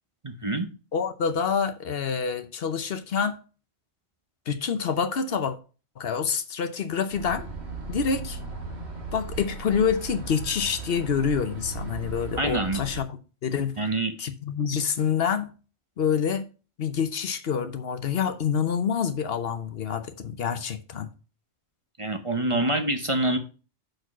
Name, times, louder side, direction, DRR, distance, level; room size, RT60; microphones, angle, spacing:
voice 1, 0.2-0.7 12.4-12.8 13.8-14.1 22.0-23.4, right 1 dB, 30° right, 0.8 m, -26 dB
voice 2, 0.9-3.4 4.5-5.6 6.0-7.5 7.9-8.4 9.1-13.1 13.4-13.7 14.2-15.5 16.0-16.5 16.8-21.1, left 6 dB, 65° left, 1.0 m, -27 dB
sound 1, 7.1-13.0, right 3 dB, 75° right, 1.9 m, -37 dB
6.4 x 4.6 x 6.0 m
omnidirectional pair, 1.1 m